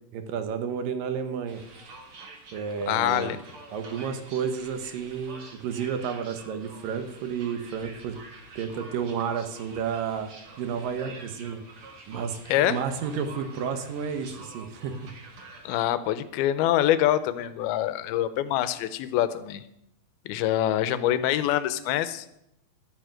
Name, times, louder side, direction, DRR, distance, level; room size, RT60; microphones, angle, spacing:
voice 1, 0.1-1.6 2.5-3.4 3.7-8.2 8.6-10.3 10.6-11.6 12.1-15.0, right 7 dB, 65° right, 7 dB, 2.6 m, -31 dB
sound 1, 1.5-15.8, right 3 dB, 45° right, 2.0 m, -47 dB
voice 2, 2.9-3.4 12.5-12.8 15.7-19.6 20.3-22.3, left 12 dB, 75° left, 13 dB, 2.5 m, -25 dB
12.5 x 8.5 x 7.7 m, 0.78 s
omnidirectional pair, 4.7 m